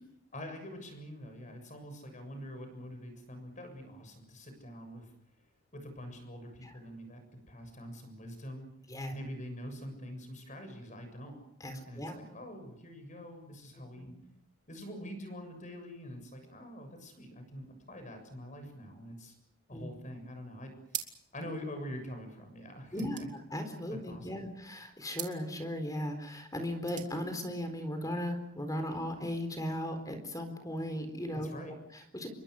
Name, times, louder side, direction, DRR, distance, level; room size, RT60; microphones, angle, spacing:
voice 1, 0.3-5.1 5.7-8.7 9.1-11.4 11.9-14.1 14.7-19.4 19.7-21.0 21.3-23.3 23.9-24.4 31.3-31.8, equal, 35° left, 7 dB, 7.1 m, -45 dB
voice 2, 11.6-12.1 14.0-14.1 19.7-19.9 22.9-23.2 23.5-32.3, left 1 dB, 15° left, 7 dB, 4.1 m, -37 dB
sound 1, 20.8-21.5 21.8-21.9 22.1-24.3 25.1-25.4 26.6-27.2, right 10 dB, 35° right, 2.8 m, -43 dB
28.5 x 23.0 x 6.6 m, 0.77 s
head